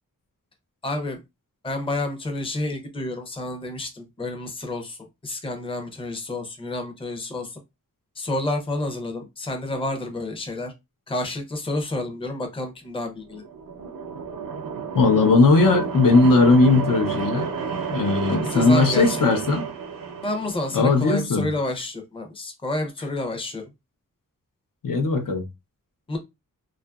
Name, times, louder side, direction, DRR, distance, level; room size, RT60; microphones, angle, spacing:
voice 1, 0.8-1.2 1.6-5.0 5.2-7.6 8.2-10.7 11.1-13.4 18.4-19.2 20.2-23.6 26.1-26.2, left 2 dB, 15° left, 0.5 m, -29 dB
sound 1, 13.2-21.1, right 6 dB, 80° right, 0.6 m, -31 dB
voice 2, 14.9-17.5 17.9-19.6 20.7-21.5 24.8-25.4, left 3 dB, 75° left, 0.7 m, -18 dB
2.7 x 2.4 x 2.3 m
wide cardioid pair, 125°, 33 cm